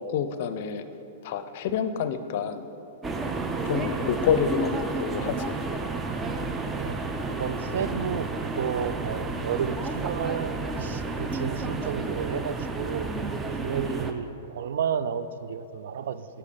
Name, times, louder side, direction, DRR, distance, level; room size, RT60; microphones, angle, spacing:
voice 1, 0.1-0.8 1.2-2.7 3.7-5.6 13.8-14.0, left 7 dB, 55° left, 11 dB, 0.5 m, -28 dB
sound 1, 3.0-14.1, right 3 dB, 15° right, 0.5 m, -31 dB
voice 2, 6.3-7.0 7.4-10.5 10.8-13.1 13.6-16.3, right 7 dB, 70° right, 13 dB, 0.3 m, -32 dB
8.3 x 4.7 x 5.2 m, 2.8 s
hypercardioid pair, 110°, 0 cm